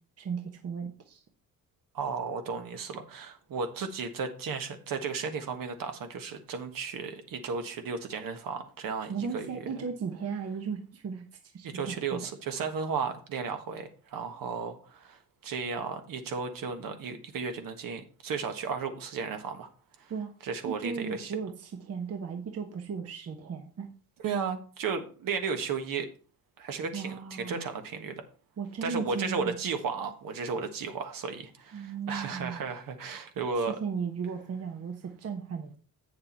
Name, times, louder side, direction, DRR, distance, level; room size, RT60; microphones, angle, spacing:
voice 1, 0.2-1.2 9.1-12.2 20.1-20.4 20.6-23.9 26.9-27.7 28.6-29.5 31.7-32.6 33.6-35.8, right 6 dB, 40° right, 5 dB, 1.1 m, -36 dB
voice 2, 1.9-9.6 11.6-19.7 20.0-20.1 20.4-21.3 24.2-26.1 26.6-28.1 28.8-33.8, right 5 dB, 60° right, 7 dB, 1.5 m, -34 dB
8.4 x 6.7 x 4.4 m, 0.38 s
cardioid pair, 140°, 37 cm